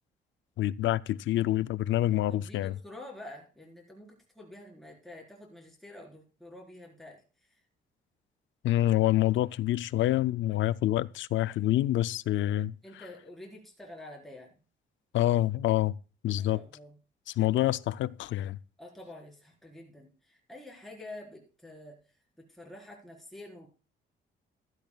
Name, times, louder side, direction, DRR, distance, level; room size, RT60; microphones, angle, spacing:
voice 1, 0.6-2.8 8.6-12.7 15.1-16.0 16.2-16.6 17.3-18.6, left 14 dB, 70° left, 0.5 m, -27 dB
voice 2, 2.3-7.2 10.5-10.6 12.8-14.5 16.4-16.9 18.8-22.0 22.4-23.7, left 1 dB, ahead, 4.4 m, -48 dB
15.5 x 12.0 x 2.4 m
cardioid pair, 90°, 20 cm